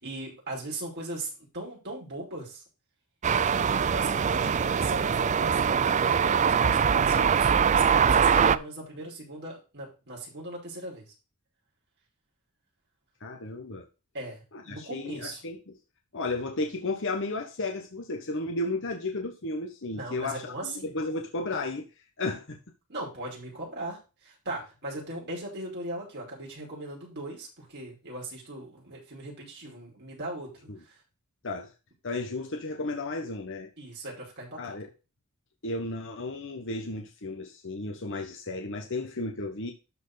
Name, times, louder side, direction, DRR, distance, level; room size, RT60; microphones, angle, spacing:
voice 1, 0.0-2.6 3.5-11.1 14.1-15.4 19.9-20.9 22.9-30.7 33.8-34.7, right 2 dB, 50° right, 5.3 m, -39 dB
sound 1, 3.2-8.6, right 7 dB, 35° right, 0.4 m, -23 dB
voice 2, 13.2-13.9 14.5-15.8 16.1-21.9 22.2-22.6 30.7-30.8 31.4-31.7 32.0-33.7 34.6-34.9 35.6-39.7, left 2 dB, 60° left, 1.2 m, -33 dB
12.5 x 4.6 x 4.0 m
head